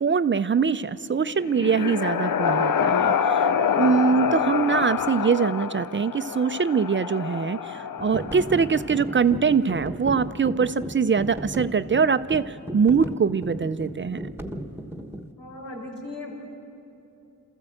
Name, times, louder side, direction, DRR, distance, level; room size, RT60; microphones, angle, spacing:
voice 1, 0.0-14.2, right 6 dB, 35° right, 13 dB, 0.5 m, -23 dB
sound 1, 1.1-9.0, left 7 dB, 70° left, 0.6 m, -26 dB
sound 2, 8.0-15.3, right 1 dB, 5° right, 1.2 m, -36 dB
voice 2, 15.4-16.3, left 2 dB, 90° left, -2 dB, 5.3 m, -37 dB
28.0 x 14.0 x 7.8 m, 2.9 s
cardioid pair, 70°, 35 cm